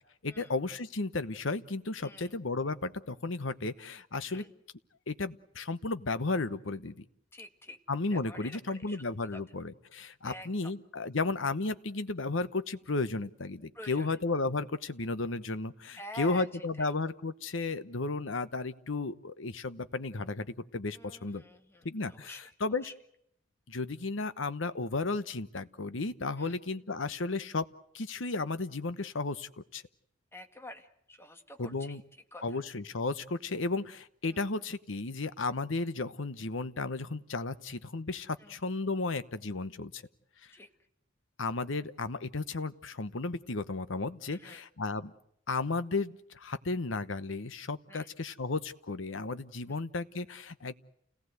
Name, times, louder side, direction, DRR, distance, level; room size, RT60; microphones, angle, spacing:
voice 1, 0.2-4.5 5.1-7.0 7.9-21.4 21.8-22.9 23.7-27.7 27.9-29.8 31.6-32.0 32.4-40.0 41.4-45.1 45.5-50.7, left 3 dB, 75° left, 13 dB, 1.1 m, -34 dB
voice 2, 7.3-7.8 8.1-8.6 8.9-9.0 9.3-9.4 10.2-10.7 13.7-14.1 15.9-16.5 16.8-16.9 21.0-22.4 22.8-22.9 26.4-26.6 30.3-32.0 32.3-32.6 34.3-34.4 38.4-38.5 40.5-40.7 44.3-44.6 47.9-48.1 49.7-49.8, left 2 dB, 10° left, 6 dB, 1.8 m, -47 dB
29.5 x 18.0 x 8.0 m, 0.73 s
head